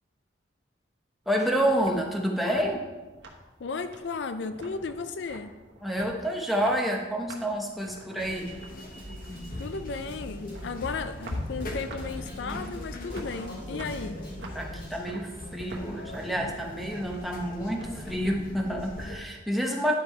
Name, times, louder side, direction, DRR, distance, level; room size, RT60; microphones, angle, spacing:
sound 1, 1.2-17.8, right 2 dB, 70° right, 1.2 m, -48 dB
voice 1, 1.3-2.8 5.8-8.5 14.5-20.0, equal, ahead, 0 dB, 0.9 m, -28 dB
voice 2, 3.6-5.5 9.6-14.2, left 4 dB, 70° left, 10 dB, 0.4 m, -35 dB
sound 2, 8.2-19.2, left 1 dB, 50° left, 1.1 m, -40 dB
Drum kit, 9.0-15.0, equal, 30° left, 2.6 m, -43 dB
10.0 x 5.2 x 4.4 m, 1.2 s
head